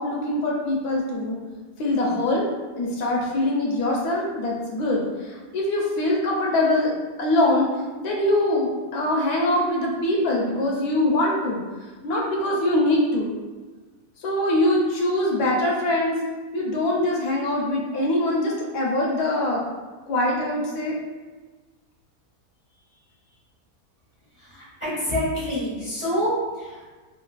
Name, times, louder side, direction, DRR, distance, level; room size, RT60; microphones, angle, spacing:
voice 1, 0.0-1.4 1.8-2.5 2.7-6.9 7.2-7.7 8.0-11.6 12.0-13.3 14.2-16.2 16.5-19.6 20.1-21.0, left 1 dB, 80° left, -2 dB, 1.2 m, -23 dB
voice 2, 24.4-26.8, equal, 35° right, -8 dB, 0.5 m, -27 dB
3.3 x 2.6 x 2.2 m, 1.3 s
omnidirectional pair, 1.7 m